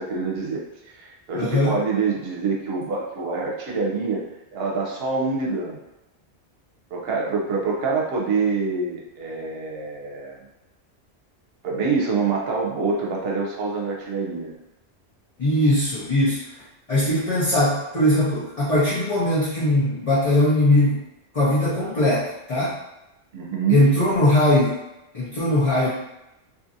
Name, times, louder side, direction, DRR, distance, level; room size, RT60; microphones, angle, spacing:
voice 1, 0.0-4.2 4.5-5.8 6.9-10.4 11.6-14.6 23.3-24.0, right 4 dB, 65° right, -1 dB, 0.8 m, -26 dB
voice 2, 1.3-1.7 15.4-16.4 16.9-21.0 21.3-22.7 23.7-24.8 25.1-25.9, left 1 dB, 35° left, -9 dB, 0.7 m, -20 dB
2.6 x 2.5 x 2.6 m, 0.92 s
omnidirectional pair, 1.1 m